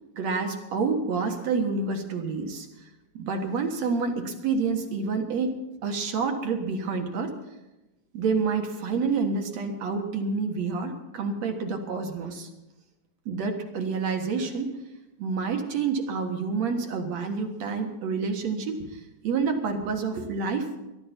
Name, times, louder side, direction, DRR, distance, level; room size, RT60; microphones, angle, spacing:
voice 1, 0.2-2.7 3.1-7.3 8.1-12.5 13.3-14.8 15.2-20.7, right 4 dB, 55° right, 4 dB, 2.5 m, -28 dB
22.5 x 12.0 x 4.4 m, 0.99 s
omnidirectional pair, 4.0 m